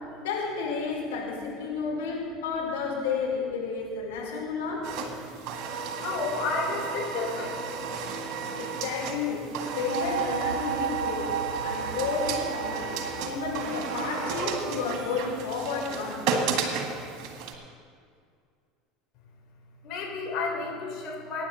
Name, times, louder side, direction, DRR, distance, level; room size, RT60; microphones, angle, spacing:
voice 1, 0.2-4.9 8.6-11.4 11.6-16.7, left 5 dB, 65° left, -4 dB, 4.5 m, -32 dB
sound 1, 4.8-17.6, right 5 dB, 50° right, 1.8 m, -33 dB
voice 2, 6.0-7.6 19.8-21.5, left 4 dB, 50° left, -1 dB, 3.5 m, -31 dB
sound 2, 9.7-17.1, right 8 dB, 80° right, 0.4 m, -35 dB
23.0 x 9.9 x 4.1 m, 2.1 s
figure-of-eight pair, 70°, 0 cm